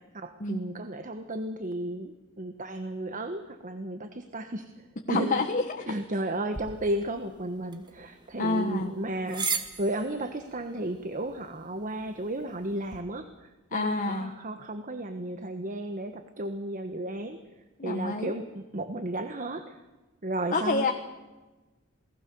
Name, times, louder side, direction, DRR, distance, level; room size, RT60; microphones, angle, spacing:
voice 1, 0.0-5.4 5.9-17.4 17.8-19.8 20.2-20.9, right 1 dB, 40° right, 8 dB, 1.3 m, -34 dB
voice 2, 5.1-5.9 8.4-8.9 13.7-14.3 17.8-18.3 20.5-20.9, left 3 dB, 40° left, 4 dB, 1.4 m, -28 dB
sound 1, 6.5-13.0, right 4 dB, 20° right, 2.0 m, -39 dB
28.0 x 19.0 x 6.9 m, 1.2 s
head